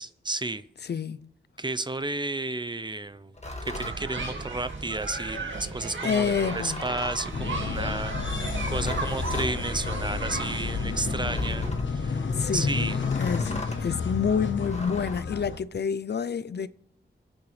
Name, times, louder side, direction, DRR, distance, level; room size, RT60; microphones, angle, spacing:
voice 1, 0.0-0.7 1.6-3.3 3.6-12.2 12.5-13.0, right 2 dB, 25° right, 0.6 m, -32 dB
voice 2, 0.8-1.3 6.0-6.8 12.3-12.8 13.2-16.7, left 6 dB, 60° left, 0.5 m, -28 dB
sound 1, 3.3-4.0 6.3-7.4 8.5-9.5 11.2-12.0 12.9-13.8 14.6-15.2, left 1 dB, 35° left, 1.8 m, -37 dB
sound 2, 3.7-11.7, right 3 dB, 80° right, 2.0 m, -35 dB
sound 3, 7.3-15.6, left 5 dB, 80° left, 1.1 m, -30 dB
26.0 x 8.8 x 3.2 m
wide cardioid pair, 80°, 19 cm